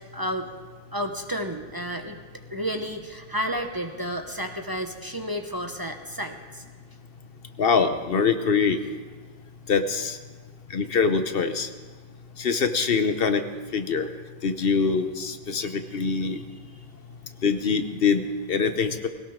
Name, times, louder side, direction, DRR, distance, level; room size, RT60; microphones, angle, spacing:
voice 1, 0.1-0.5 0.9-2.2 2.5-6.6 15.6-15.7 16.3-16.4, equal, 25° right, 5 dB, 0.9 m, -31 dB
voice 2, 7.6-8.8 9.7-10.2 10.7-11.7 12.4-13.4 13.7-14.1 14.4-16.4 17.4-19.1, left 5 dB, 65° left, 8 dB, 1.1 m, -24 dB
21.0 x 17.5 x 3.7 m, 1.5 s
omnidirectional pair, 1.0 m